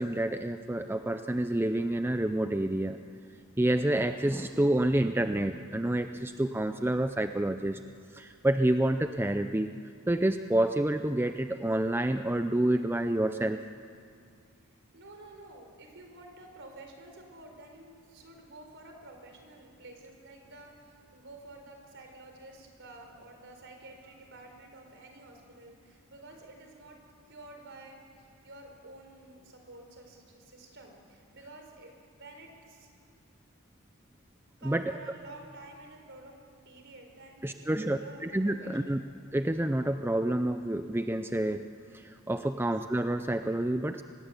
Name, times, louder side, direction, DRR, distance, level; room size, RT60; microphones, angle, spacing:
voice 1, 0.0-3.0 3.6-7.8 8.1-9.7 10.1-13.6 34.6-34.9 37.4-39.0 39.3-41.7 41.9-44.0, right 1 dB, 10° right, 8 dB, 0.5 m, -28 dB
voice 2, 14.7-27.0 27.3-32.9 34.6-39.0 42.5-42.7, right 2 dB, 60° right, 3 dB, 4.5 m, -51 dB
25.0 x 20.5 x 8.4 m, 2.3 s
head